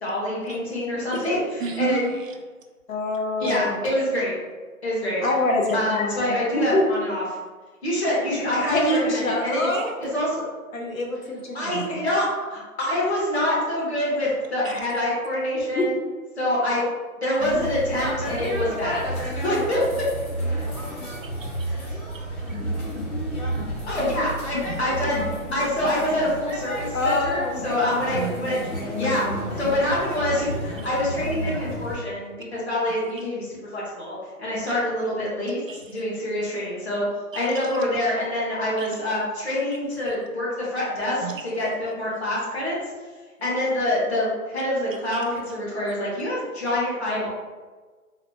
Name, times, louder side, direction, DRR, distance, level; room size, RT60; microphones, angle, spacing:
voice 1, 0.0-2.0 3.4-4.3 4.8-5.2 5.7-7.2 7.8-9.7 10.0-10.4 11.5-16.0 16.4-16.8 17.2-19.8 20.6-20.7 21.6-22.0 23.9-25.2 25.5-28.6 28.9-29.2 29.6-35.6 35.9-37.1 37.3-42.7 43.4-47.3, left 1 dB, 50° left, -6 dB, 1.4 m, -26 dB
voice 2, 1.6-2.4 3.5-3.6 9.7-9.9 11.6-12.0 14.6-14.8 21.2-21.7 22.1-22.2 22.5-22.6 28.1-28.6 35.7-35.8 37.3-37.8 38.8-39.1 41.2-41.4, right 6 dB, 65° right, 3 dB, 0.5 m, -33 dB
voice 3, 2.9-3.8 5.2-6.8 8.7-9.9 10.7-11.6 15.8-15.9 26.9-29.5, left 1 dB, 65° left, 0 dB, 0.8 m, -26 dB
sound 1, 17.4-32.0, right 1 dB, 90° left, 1.4 m, -31 dB
4.0 x 2.1 x 2.9 m, 1.3 s
hypercardioid pair, 175°, 43 cm